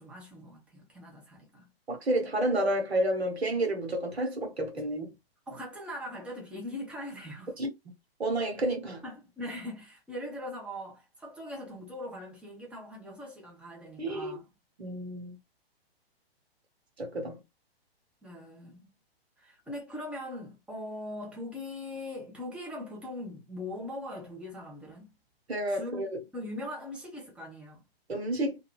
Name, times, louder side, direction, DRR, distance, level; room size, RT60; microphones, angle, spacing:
voice 1, 0.0-1.7 5.5-7.6 9.0-14.4 18.2-18.9 19.4-25.1 25.7-27.8, left 1 dB, 5° right, 0.9 m, -41 dB
voice 2, 1.9-5.1 7.6-7.7 8.2-9.0 14.0-14.4 14.8-15.4 17.0-17.4 25.5-26.1 28.1-28.6, right 1 dB, 85° right, 1.2 m, -30 dB
2.6 x 2.5 x 2.2 m
figure-of-eight pair, 125°, 31 cm